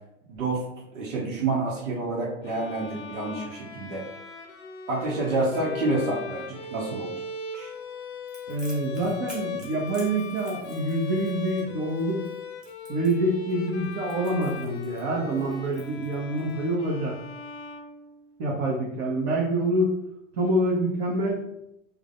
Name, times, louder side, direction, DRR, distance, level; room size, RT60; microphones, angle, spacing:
voice 1, 0.3-0.6 0.9-4.0 4.9-7.1 7.5-7.7, right 2 dB, 65° right, -3 dB, 0.9 m, -28 dB
Bowed string instrument, 2.4-18.5, left 5 dB, 55° left, 0.6 m, -39 dB
Crackle, 8.3-16.5, equal, ahead, 0.3 m, -49 dB
voice 2, 8.5-12.3 12.9-17.1 18.4-19.9 20.3-21.4, right 1 dB, 35° right, -3 dB, 0.8 m, -26 dB
4.7 x 2.2 x 2.4 m, 0.83 s
figure-of-eight pair, 95°, 40 cm